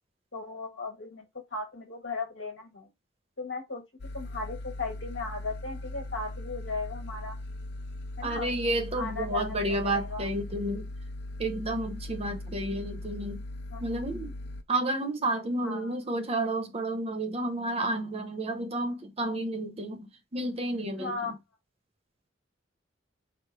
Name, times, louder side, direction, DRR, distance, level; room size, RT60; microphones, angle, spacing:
voice 1, 0.3-1.2 1.5-2.9 3.4-3.8 4.1-7.4 8.2-8.5 9.0-10.3 13.7-13.9 15.6-15.9 21.0-21.3, left 3 dB, 85° left, 1.5 m, -36 dB
sound 1, 4.0-14.6, left 1 dB, 60° left, 0.5 m, -39 dB
voice 2, 8.2-10.9 11.4-13.5 13.8-14.3 14.7-21.3, right 1 dB, 35° right, 0.7 m, -31 dB
4.9 x 2.0 x 4.6 m
head